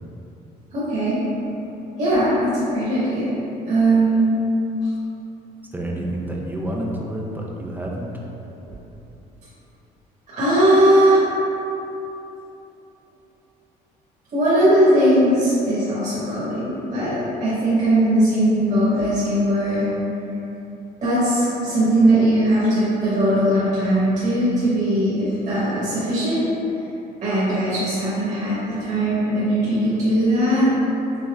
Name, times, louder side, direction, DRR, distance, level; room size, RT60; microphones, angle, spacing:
voice 1, 0.7-1.2 2.0-3.3 3.7-4.3 10.3-11.2 14.3-19.9 21.0-26.4 27.2-30.7, right 1 dB, 45° right, -11 dB, 1.3 m, -19 dB
voice 2, 5.7-8.3, right 1 dB, 10° right, -2 dB, 0.5 m, -29 dB
5.4 x 2.9 x 2.3 m, 3.0 s
cardioid pair, 110°, 17 cm